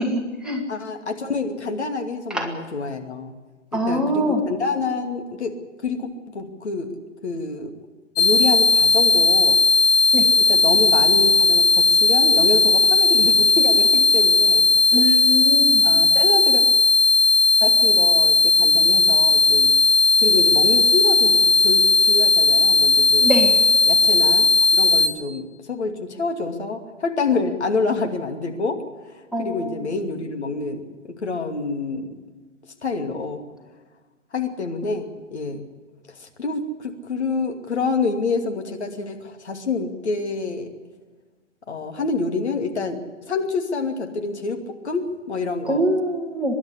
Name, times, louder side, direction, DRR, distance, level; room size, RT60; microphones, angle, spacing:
voice 1, 0.1-0.6 2.3-2.5 3.7-4.4 10.1-10.3 14.9-15.9 23.2-23.6 29.3-29.8 45.7-46.5, equal, ahead, -1 dB, 1.9 m, -23 dB
voice 2, 0.7-3.3 3.7-6.1 6.3-7.7 8.2-9.6 10.4-14.7 14.9-15.1 15.8-16.6 17.6-19.7 20.2-23.3 23.8-24.5 24.7-28.8 29.4-32.1 32.8-33.4 34.3-35.7 36.1-40.7 41.7-43.0 43.3-45.8, left 4 dB, 65° left, 4 dB, 2.6 m, -27 dB
sound 1, 8.2-25.1, left 3 dB, 50° left, 3.6 m, -16 dB
24.0 x 11.5 x 9.9 m, 1.3 s
figure-of-eight pair, 125°, 36 cm